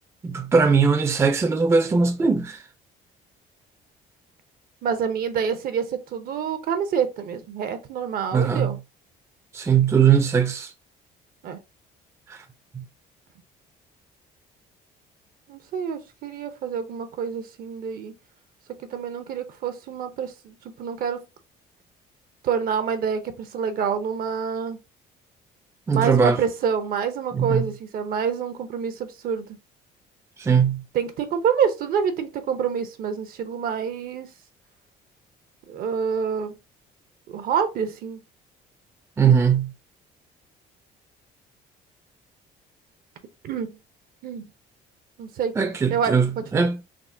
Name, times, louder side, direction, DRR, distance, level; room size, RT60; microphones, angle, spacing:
voice 1, 0.2-2.6 8.3-8.8 9.5-10.7 12.3-12.4 12.7-12.8 25.9-26.4 27.3-27.7 30.4-30.8 39.2-39.7 45.6-46.8, right 6 dB, 15° right, 0.4 m, -20 dB
voice 2, 4.8-8.8 11.4-11.6 15.5-18.1 18.9-21.2 22.4-24.8 25.9-29.5 30.9-34.3 35.7-36.5 37.3-38.2 43.4-43.8 44.2-44.5 45.2-45.5 45.9-46.6, right 7 dB, 60° right, 0.6 m, -27 dB
3.6 x 2.1 x 2.5 m
cardioid pair, 110°, 17 cm